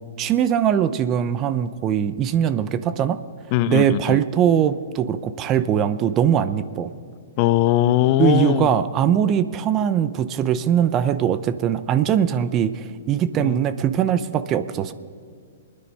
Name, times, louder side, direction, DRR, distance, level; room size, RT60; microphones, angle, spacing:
voice 1, 0.2-3.2 3.7-6.9 8.2-14.9, right 9 dB, 25° right, 14 dB, 0.6 m, -21 dB
voice 2, 3.5-4.2 7.4-8.7 13.4-13.5, left 14 dB, 35° left, 15 dB, 0.5 m, -20 dB
23.5 x 10.0 x 5.5 m, 2.2 s
hypercardioid pair, 150°, 0 cm